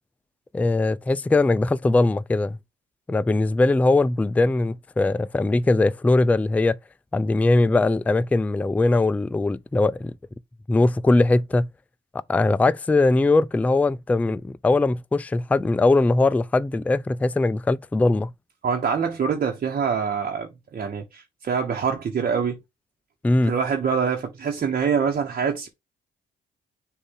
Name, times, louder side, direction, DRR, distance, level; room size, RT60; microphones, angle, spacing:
voice 1, 0.5-2.6 3.1-6.8 7.1-10.2 10.7-11.7 12.3-18.3 23.2-23.6, left 2 dB, 5° left, 0.3 m, -20 dB
voice 2, 18.6-22.6 23.4-25.7, right 6 dB, 45° right, 1.1 m, -25 dB
6.7 x 2.6 x 5.4 m
cardioid pair, 90°, 20 cm